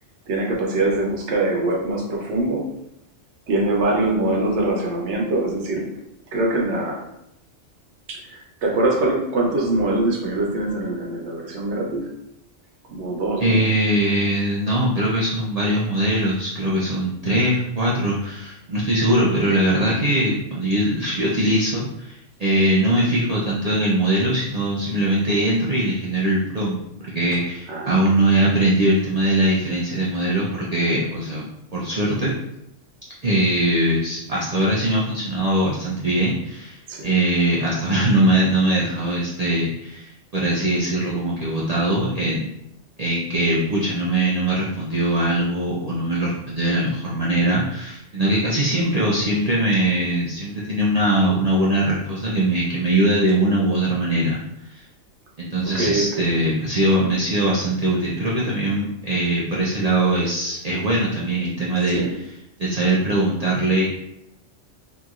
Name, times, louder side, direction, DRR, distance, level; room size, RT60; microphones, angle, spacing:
voice 1, 0.3-2.7 3.5-5.9 6.3-7.1 8.1-12.1 12.9-13.6 27.7-28.0 36.9-37.1 55.6-56.3 61.9-62.2, right 2 dB, 70° right, -1 dB, 0.9 m, -23 dB
voice 2, 13.4-26.8 27.1-31.4 31.7-32.3 33.2-42.5 43.0-54.4 54.7-54.8 55.4-62.0 62.6-63.8, right 1 dB, 85° right, -5 dB, 0.3 m, -21 dB
2.9 x 2.7 x 2.4 m, 0.81 s
omnidirectional pair, 1.3 m